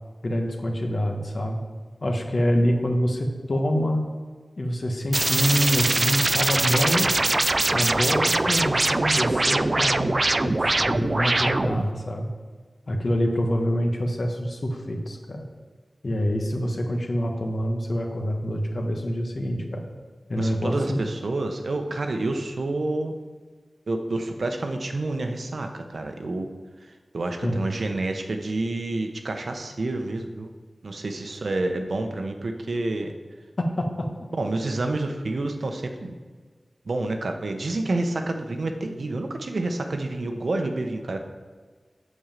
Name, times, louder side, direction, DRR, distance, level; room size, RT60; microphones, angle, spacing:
voice 1, 0.2-1.6 2.0-4.1 4.6-7.1 7.7-12.3 12.9-15.5 16.0-19.8 20.3-21.0 27.4-27.6 33.8-34.1, equal, 55° left, 2 dB, 1.3 m, -26 dB
sound 1, 5.1-11.9, right 2 dB, 40° right, 0.3 m, -22 dB
voice 2, 20.4-23.1 23.9-26.5 26.8-30.5 30.8-33.1 34.3-36.1 36.8-41.2, right 2 dB, 70° right, 5 dB, 0.9 m, -28 dB
8.1 x 5.4 x 7.5 m, 1.5 s
wide cardioid pair, 75°, 0 cm